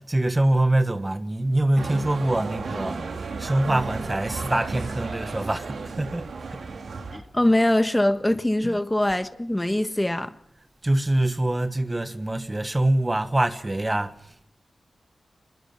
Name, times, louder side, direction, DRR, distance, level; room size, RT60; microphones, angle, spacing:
voice 1, 0.0-6.7 8.6-8.8 10.8-14.4, right 1 dB, 25° right, 1.4 m, -25 dB
sound 1, 1.8-7.2, right 4 dB, 85° right, 2.9 m, -33 dB
voice 2, 7.1-10.3, left 1 dB, 15° left, 1.4 m, -23 dB
24.0 x 21.5 x 6.0 m
cardioid pair, 70°, 0 cm